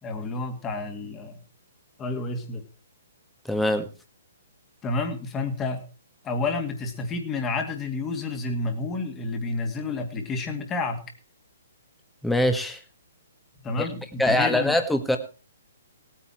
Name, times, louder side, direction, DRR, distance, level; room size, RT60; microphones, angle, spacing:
voice 1, 0.0-1.4 2.0-2.6 4.8-5.9 6.2-11.0 13.6-14.7, left 3 dB, 20° left, 5 dB, 2.4 m, -30 dB
voice 2, 3.5-3.9 12.2-12.8 13.8-13.9 14.2-15.2, left 1 dB, 5° left, 6 dB, 1.7 m, -23 dB
18.0 x 9.2 x 4.5 m, 0.35 s
hypercardioid pair, 135°, 0 cm